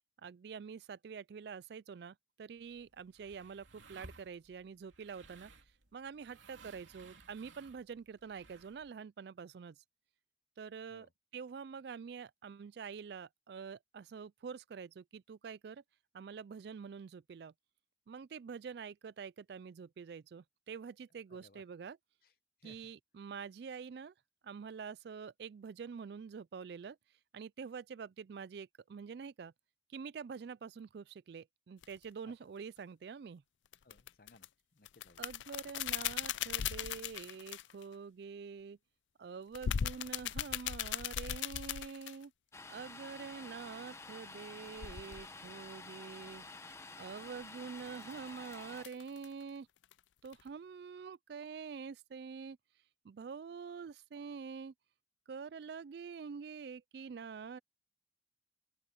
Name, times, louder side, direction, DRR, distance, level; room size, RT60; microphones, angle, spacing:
voice 1, 0.2-5.5 5.9-9.8 10.6-15.8 16.1-17.5 18.1-22.0 22.6-24.1 24.4-27.0 27.3-29.5 29.9-33.4 35.2-38.8 39.2-42.3 42.7-46.5 47.0-49.7 50.2-52.6 53.0-54.7 55.3-57.6, right 6 dB, 60° right, 0.3 m, -46 dB
sound 1, 2.6-8.9, right 3 dB, 85° right, 3.2 m, -59 dB
voice 2, 21.3-21.6 22.6-22.9 32.3-32.4 33.8-34.5 34.7-35.3, left 3 dB, 50° left, 0.9 m, -62 dB
sound 2, 31.8-32.0 33.7-34.5 34.9-37.8 39.5-42.2 44.7-45.3 47.8-49.4 49.8-49.9 50.3-50.5, left 9 dB, 80° left, 0.4 m, -38 dB
Domestic sounds home sounds, 42.5-48.9, left 3 dB, 15° left, 1.0 m, -50 dB
open air
head